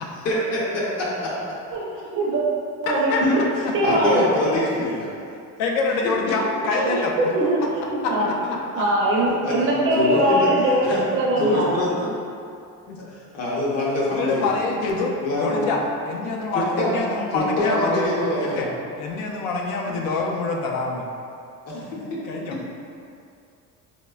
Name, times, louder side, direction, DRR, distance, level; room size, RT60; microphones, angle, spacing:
voice 1, 2.1-2.4 2.8-3.4 3.7-4.5 6.7-8.3 8.7-11.8, right 1 dB, 40° right, -5 dB, 0.5 m, -22 dB
voice 2, 2.9-3.2 4.1-4.2 5.6-7.1 12.9-13.0 14.1-15.1 15.4-18.7 19.0-21.1 21.7-22.6, left 3 dB, 85° left, -1 dB, 0.5 m, -26 dB
voice 3, 3.8-5.1 7.4-7.5 9.4-9.7 9.9-10.5 10.8-11.0 11.3-11.9 13.1-14.5 15.2-15.7 16.5-17.0 17.3-18.7 19.9-20.0 21.7-21.8 22.1-22.2, left 2 dB, 50° left, -6 dB, 0.7 m, -24 dB
4.1 x 2.1 x 2.3 m, 2.5 s
cardioid pair, 175°, 34 cm